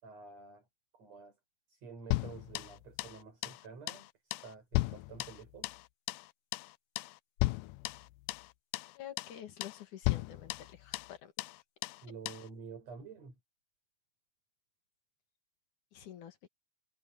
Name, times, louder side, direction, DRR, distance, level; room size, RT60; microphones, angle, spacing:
voice 1, 0.0-0.6 0.9-1.3 1.7-5.8 12.0-13.3, right 5 dB, 50° right, 6.1 m, -50 dB
sound 1, 2.1-3.2 3.4-3.6 3.9-4.1 4.3-5.8 6.1-6.3 6.5-6.7 7.0-7.1 7.4-8.5 8.7-8.9 9.2-9.4 9.6-9.8 10.0-11.1 11.4-11.6 11.8-12.0 12.3-12.4, left 19 dB, 80° left, 2.1 m, -35 dB
voice 2, 9.0-11.3 15.9-16.5, left 10 dB, 65° left, 3.6 m, -48 dB
omnidirectional pair, 3.9 m